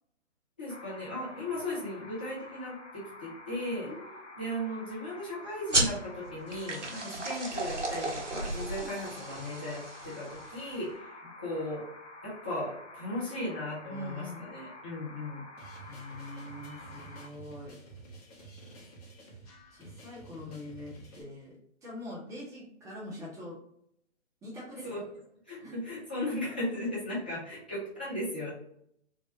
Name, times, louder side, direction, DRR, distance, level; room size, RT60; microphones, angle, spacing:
voice 1, 0.6-3.9 4.4-11.8 12.2-15.4 24.8-25.0 25.5-28.5, left 1 dB, 10° left, -8 dB, 0.3 m, -36 dB
sound 1, 0.7-17.3, left 1 dB, 85° left, 0.7 m, -49 dB
sound 2, 5.7-10.8, right 2 dB, 80° right, 1.0 m, -33 dB
voice 2, 6.9-7.2 8.8-8.9 11.2-11.3 13.8-14.5 15.9-17.7 19.7-21.5 21.8-23.6 24.4-24.9 25.6-25.7, left 1 dB, 10° right, -5 dB, 0.8 m, -44 dB
sound 3, 15.6-21.2, right 3 dB, 30° left, 0.8 m, -51 dB
3.6 x 2.1 x 2.8 m, 0.71 s
figure-of-eight pair, 125°, 36 cm